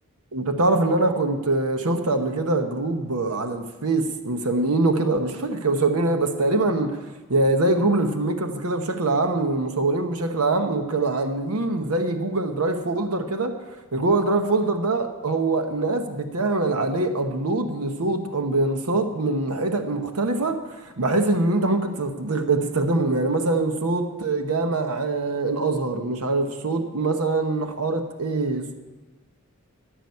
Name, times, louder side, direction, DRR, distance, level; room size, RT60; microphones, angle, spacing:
voice 1, 0.3-7.0 7.3-13.5 13.9-28.7, right 2 dB, 80° right, 6 dB, 1.0 m, -23 dB
14.0 x 6.2 x 9.5 m, 1.2 s
head